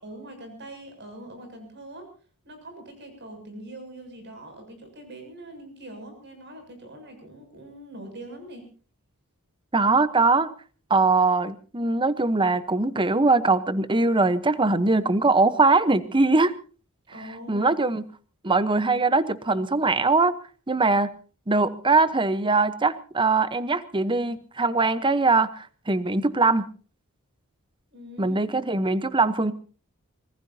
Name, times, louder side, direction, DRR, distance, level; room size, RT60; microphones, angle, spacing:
voice 1, 0.0-2.1 2.4-8.7 17.1-17.7 27.9-28.4, right 1 dB, 50° right, 5 dB, 7.1 m, -43 dB
voice 2, 9.7-10.5 10.9-16.6 17.5-18.0 18.4-20.4 20.7-21.1 21.5-26.7 28.2-29.5, right 3 dB, 20° right, 14 dB, 0.9 m, -21 dB
25.5 x 19.0 x 2.8 m, 0.38 s
head